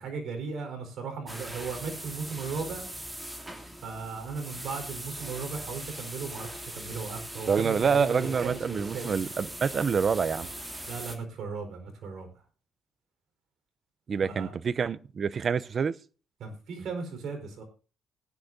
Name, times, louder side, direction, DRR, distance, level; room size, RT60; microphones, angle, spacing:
voice 1, 0.0-2.8 3.8-9.1 10.9-12.3 14.3-14.5 16.4-17.6, right 5 dB, 70° right, 4.4 m, -36 dB
sound 1, 1.3-11.2, right 1 dB, 15° right, 2.8 m, -41 dB
voice 2, 7.5-10.5 14.1-15.9, right 6 dB, 45° right, 0.6 m, -27 dB
19.5 x 10.5 x 2.7 m
cardioid pair, 90°, 0 cm